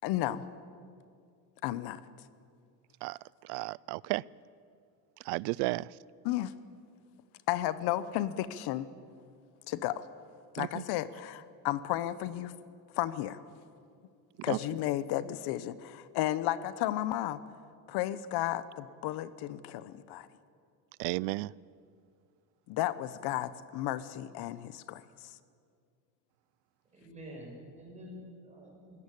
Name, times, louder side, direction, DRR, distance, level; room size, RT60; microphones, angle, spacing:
voice 1, 0.0-0.4 1.6-2.0 6.2-6.5 7.5-8.9 9.7-10.0 10.5-12.5 12.9-13.4 14.4-17.4 17.9-20.3 22.7-25.0, left 14 dB, 65° left, 1.1 m, -33 dB
voice 2, 3.0-4.2 5.2-6.0 10.6-10.8 14.5-14.6 21.0-21.5, right 22 dB, 70° right, 0.5 m, -33 dB
voice 3, 26.9-29.0, equal, 15° right, 6.4 m, -48 dB
23.5 x 17.0 x 8.4 m
cardioid pair, 165°, 42 cm